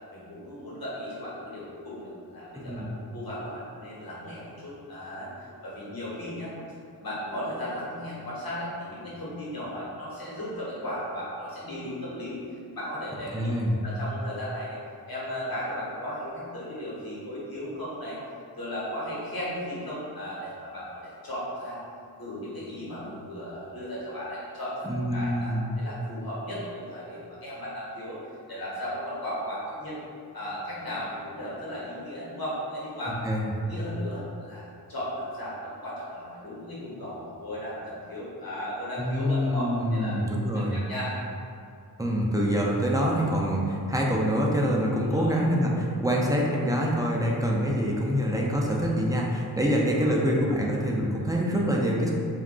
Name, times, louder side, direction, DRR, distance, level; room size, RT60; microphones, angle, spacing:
voice 1, 0.1-12.4 12.7-13.5 13.8-14.8 15.1-18.2 18.6-21.8 22.2-28.2 28.5-30.0 30.3-33.2 33.6-40.2 40.7-41.1 44.9-45.3 49.6-50.3, equal, 55° left, -8 dB, 1.2 m, -36 dB
voice 2, 2.5-2.9 13.3-13.8 24.8-25.7 33.2-33.5 39.0-40.8 42.0-52.1, equal, 10° right, -3 dB, 0.5 m, -25 dB
2.4 x 2.2 x 3.7 m, 2.4 s
cardioid pair, 40°, 42 cm